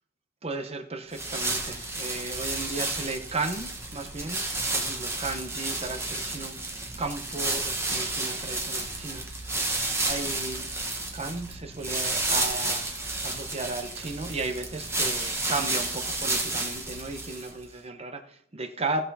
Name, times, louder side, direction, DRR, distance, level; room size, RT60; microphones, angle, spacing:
voice 1, 0.4-6.6 7.0-9.6 10.0-10.7 11.1-19.1, right 3 dB, 30° right, 7 dB, 0.9 m, -35 dB
sound 1, 1.1-17.6, right 2 dB, 15° right, 1.3 m, -31 dB
17.0 x 5.8 x 4.1 m, 0.67 s
head